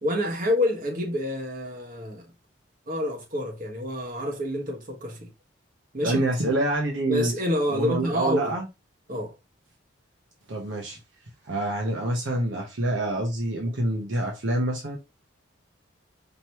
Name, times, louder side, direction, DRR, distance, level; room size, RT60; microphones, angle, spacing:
voice 1, 0.0-2.2 2.9-5.3 5.9-6.2 7.1-8.5 9.1-9.3, left 1 dB, 40° right, 1.3 m, -27 dB
voice 2, 6.0-7.3 7.7-8.7 10.5-11.0 11.4-15.0, right 1 dB, 65° right, 0.9 m, -26 dB
5.2 x 3.0 x 3.0 m
head